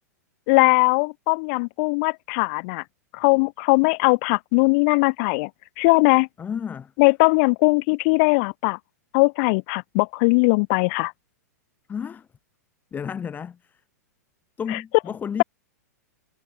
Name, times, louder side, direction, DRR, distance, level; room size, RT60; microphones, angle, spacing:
voice 1, 0.5-2.8 3.1-5.5 5.8-6.3 7.0-8.8 9.1-11.1 14.7-14.8, left 32 dB, 45° left, 0.8 m, -20 dB
voice 2, 6.4-6.9 11.9-12.3 12.9-13.8 14.6-15.4, left 7 dB, 20° left, 1.3 m, -32 dB
hypercardioid pair, 105°, 9 cm